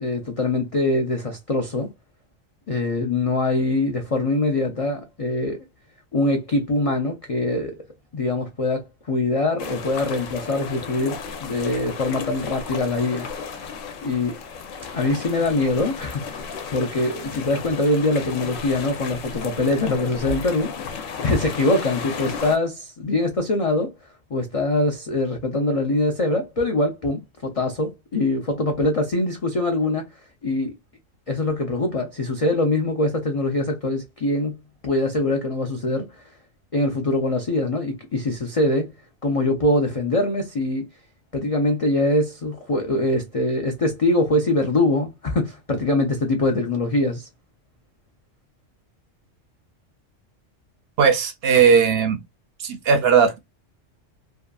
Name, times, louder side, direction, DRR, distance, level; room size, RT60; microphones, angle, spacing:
voice 1, 0.0-1.9 2.7-5.6 6.1-7.8 8.1-13.3 14.0-14.3 14.9-20.7 21.2-23.9 24.3-30.7 31.3-36.2 36.7-38.9 39.2-40.8 41.3-47.3, left 2 dB, 65° left, 0.3 m, -23 dB
sound 1, 9.6-22.6, left 5 dB, 85° left, 1.0 m, -34 dB
voice 2, 51.0-52.2 52.6-53.4, right 6 dB, 65° right, 0.7 m, -17 dB
2.7 x 2.4 x 2.2 m
omnidirectional pair, 1.3 m